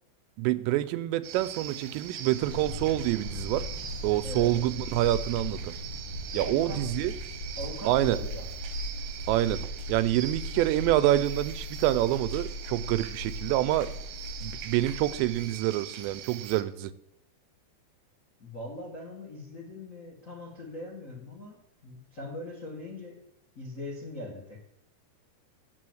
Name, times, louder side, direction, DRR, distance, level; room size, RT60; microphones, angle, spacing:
voice 1, 0.4-3.7 4.0-5.7 6.3-7.1 7.9-8.2 9.3-13.9 14.4-16.9, right 14 dB, 90° right, 13 dB, 2.8 m, -27 dB
sound 1, 1.2-16.6, right 9 dB, 75° right, 2.1 m, -42 dB
sound 2, 2.4-15.4, left 1 dB, 60° left, 2.6 m, -38 dB
voice 2, 4.2-4.5 6.3-7.1 7.6-8.5 18.4-23.2 23.5-24.6, left 1 dB, 75° left, -3 dB, 0.7 m, -41 dB
7.6 x 6.1 x 7.8 m, 0.76 s
omnidirectional pair, 5.0 m